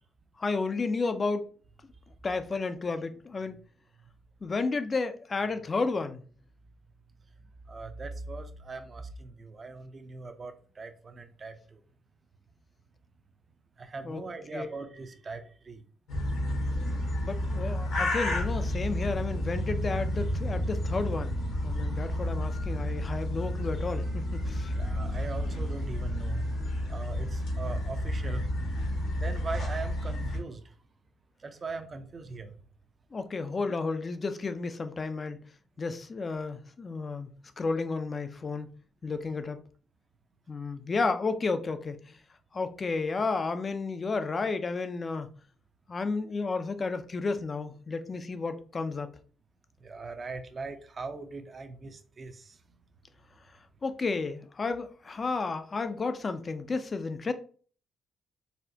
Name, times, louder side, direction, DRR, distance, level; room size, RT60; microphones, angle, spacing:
voice 1, 0.4-1.5 2.2-3.6 4.4-6.2 14.0-14.2 14.5-14.7 17.2-21.4 21.6-24.7 33.1-35.4 35.8-38.7 39.0-39.6 40.5-42.2 42.5-45.3 45.9-49.1 53.8-57.3, left 4 dB, 35° left, 0.4 m, -32 dB
voice 2, 7.7-11.8 13.8-15.8 24.7-26.5 26.9-28.5 29.1-30.7 31.4-32.5 49.8-52.6, right 3 dB, 35° right, 0.5 m, -40 dB
sound 1, 16.1-30.4, left 1 dB, 75° left, 1.4 m, -31 dB
4.1 x 2.1 x 2.7 m
cardioid pair, 90°, 0 cm